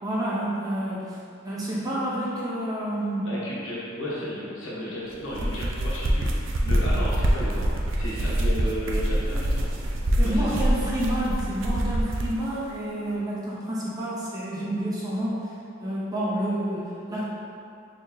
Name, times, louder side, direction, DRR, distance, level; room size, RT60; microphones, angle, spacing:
voice 1, 0.0-1.2 1.4-3.3 10.2-15.5 15.8-17.3, right 1 dB, 20° right, -7 dB, 0.6 m, -29 dB
voice 2, 3.2-7.6 7.9-9.6 10.2-10.6, equal, 70° left, -7 dB, 1.0 m, -34 dB
sound 1, 5.2-12.4, right 1 dB, 65° right, 0.5 m, -25 dB
4.1 x 3.2 x 2.7 m, 2.5 s
head